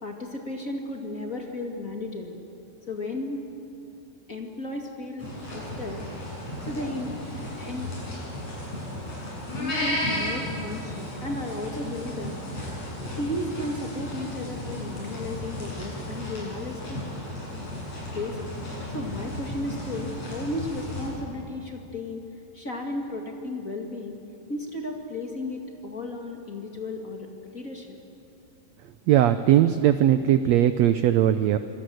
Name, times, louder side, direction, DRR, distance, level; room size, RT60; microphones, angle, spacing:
voice 1, 0.0-2.4 2.9-3.5 4.3-6.0 6.6-7.2 7.6-7.9 9.6-12.6 13.2-17.0 18.1-22.2 22.5-24.2 24.5-28.0, left 2 dB, 30° left, 2 dB, 2.1 m, -34 dB
sound 1, 5.2-21.1, left 1 dB, 55° left, 8.5 m, -34 dB
voice 2, 29.1-31.6, right 11 dB, 80° right, 10 dB, 1.6 m, -19 dB
27.0 x 25.0 x 7.8 m, 2.6 s
omnidirectional pair, 3.9 m